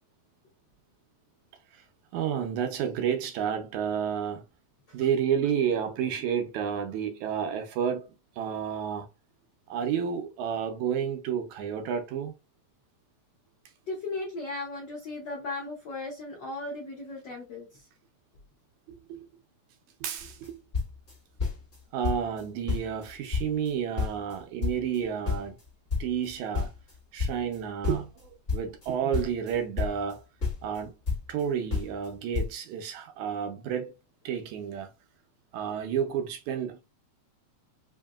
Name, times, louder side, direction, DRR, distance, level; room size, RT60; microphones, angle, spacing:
voice 1, 2.1-4.4 4.9-8.1 8.4-9.1 9.7-12.3 18.9-19.2 20.0-20.4 21.9-25.6 26.0-26.7 27.1-30.2 30.6-31.0 31.3-33.9 34.3-34.9 35.5-36.8, right 8 dB, 80° right, 2.1 m, -30 dB
voice 2, 13.9-17.9, left 2 dB, 90° left, 0.9 m, -36 dB
sound 1, 20.2-20.5 20.7-21.8 22.0-22.4 22.7-24.4 24.6-27.6 27.8-30.1 30.4-31.4 31.7-32.1 32.3-32.5, left 5 dB, 30° left, 1.7 m, -31 dB
5.0 x 2.7 x 2.3 m
omnidirectional pair, 3.3 m